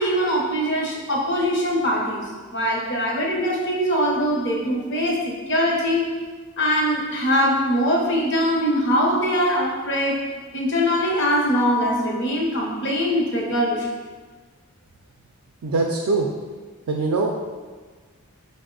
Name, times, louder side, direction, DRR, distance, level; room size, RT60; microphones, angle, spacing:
voice 1, 0.0-2.3 2.5-6.1 6.6-10.2 10.5-13.9, equal, 50° left, -1 dB, 0.7 m, -22 dB
voice 2, 15.6-16.3 16.9-17.4, right 3 dB, 80° right, 1 dB, 0.4 m, -22 dB
5.2 x 2.0 x 3.7 m, 1.4 s
head